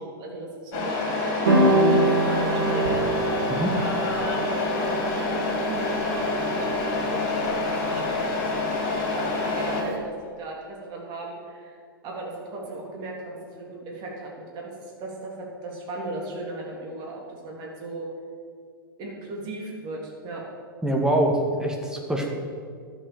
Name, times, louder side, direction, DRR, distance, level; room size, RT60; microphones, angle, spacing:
voice 1, 0.0-3.4 3.7-4.3 5.1-18.1 19.0-20.4, right 2 dB, 35° right, -2 dB, 3.3 m, -37 dB
Truck, 0.7-9.8, left 3 dB, 45° left, 3.4 m, -27 dB
sound 1, 1.5-9.9, right 2 dB, 70° right, 2.6 m, -26 dB
voice 2, 20.8-22.3, right 1 dB, 5° right, 1 dB, 2.1 m, -24 dB
12.5 x 8.1 x 7.0 m, 2.1 s
figure-of-eight pair, 105°, 12 cm